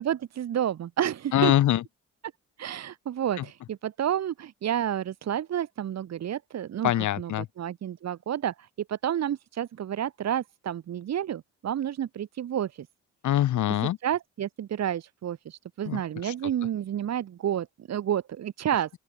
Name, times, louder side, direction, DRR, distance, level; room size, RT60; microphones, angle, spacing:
voice 1, 0.0-1.5 2.6-6.9 7.2-7.3 7.6-12.9 14.0-18.9, right 10 dB, 60° right, 1.9 m, -30 dB
voice 2, 1.3-1.8 3.4-3.5 6.8-7.5 13.2-14.0 15.9-16.3, left 12 dB, 75° left, 2.7 m, -24 dB
open air
cardioid pair, 90°, 30 cm